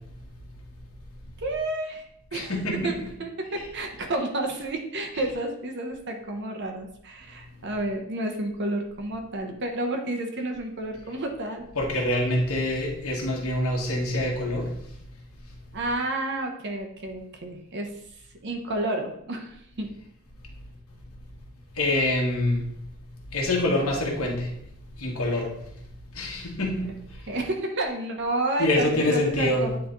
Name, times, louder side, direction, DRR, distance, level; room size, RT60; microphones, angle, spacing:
voice 1, 1.4-2.0 2.3-2.5 2.8-2.9 3.2-11.7 15.7-17.9 18.4-19.9 27.3-29.8, right 2 dB, 55° right, 3 dB, 0.9 m, -30 dB
voice 2, 2.3-3.1 11.7-14.7 21.7-22.7 23.3-24.5 25.0-25.5 26.1-26.9 28.6-29.7, left 1 dB, 75° left, -1 dB, 1.7 m, -25 dB
9.5 x 3.3 x 3.9 m, 0.74 s
head